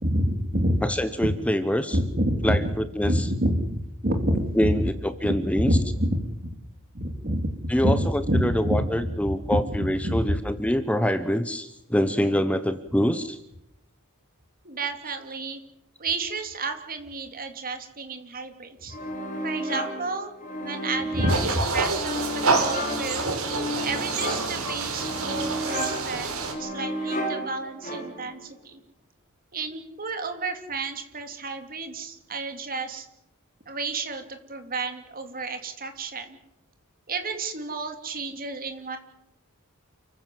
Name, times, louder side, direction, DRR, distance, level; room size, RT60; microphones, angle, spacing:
voice 1, 0.0-0.8 1.2-1.3 1.9-2.7 3.0-4.7 5.2-6.5 6.9-10.2 14.6-15.6 16.0-19.0 19.4-20.3 20.6-23.3 23.8-28.8 29.5-33.1 33.7-36.4 37.1-39.0, right 1 dB, 40° right, 6 dB, 2.9 m, -29 dB
voice 2, 0.8-2.0 2.4-3.1 4.6-5.7 7.7-13.4, equal, 5° left, 11 dB, 0.9 m, -25 dB
sound 1, 18.9-28.4, equal, 35° left, 4.4 m, -33 dB
sound 2, 21.3-26.5, right 3 dB, 70° right, 4.6 m, -27 dB
29.0 x 15.0 x 7.7 m, 0.88 s
head